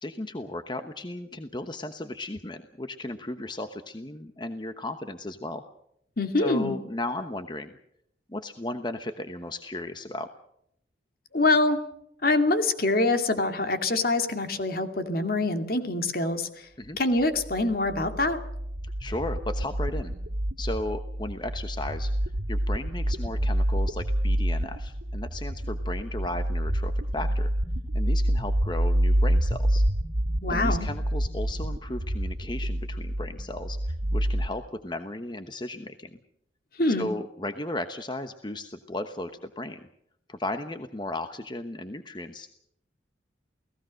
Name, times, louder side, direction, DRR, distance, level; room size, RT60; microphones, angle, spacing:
voice 1, 0.0-5.6 6.4-7.8 8.3-10.3 16.8-17.0 18.8-20.1 20.6-22.1 22.5-27.5 27.9-29.8 30.5-36.2 37.0-39.8 40.3-42.5, left 2 dB, 25° left, 8 dB, 1.1 m, -35 dB
voice 2, 6.2-6.8 11.3-11.8 12.2-16.7 17.0-18.4 30.4-30.9 36.8-37.1, left 2 dB, 55° left, 7 dB, 2.4 m, -25 dB
sound 1, 17.4-34.5, right 1 dB, 90° right, 2.0 m, -27 dB
29.5 x 18.0 x 6.4 m, 0.73 s
head